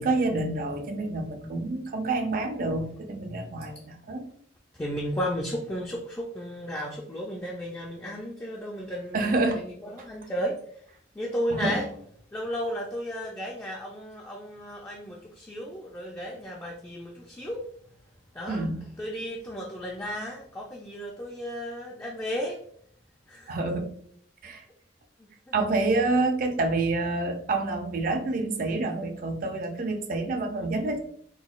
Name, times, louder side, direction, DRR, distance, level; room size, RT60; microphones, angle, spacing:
voice 1, 0.0-4.3 9.1-9.6 11.5-11.8 18.5-18.9 23.5-23.9 24.4-24.7 25.5-31.0, right 2 dB, 50° right, 5 dB, 0.5 m, -28 dB
voice 2, 4.8-10.8 11.1-11.9 12.3-17.7 18.3-18.7 19.0-22.6 23.3-23.6 25.2-25.3, equal, 15° left, -2 dB, 0.3 m, -34 dB
3.8 x 2.2 x 2.3 m, 0.62 s
head